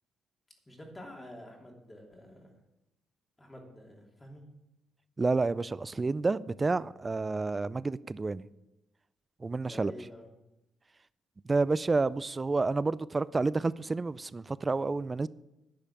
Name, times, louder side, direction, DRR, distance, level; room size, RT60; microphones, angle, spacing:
voice 1, 0.7-2.5 3.4-4.4 9.6-10.3, left 1 dB, 15° left, 3.0 m, -48 dB
voice 2, 5.2-8.5 9.4-9.9 11.5-15.3, right 3 dB, 25° right, 0.4 m, -29 dB
10.5 x 5.6 x 8.6 m
cardioid pair, 90°, 0 cm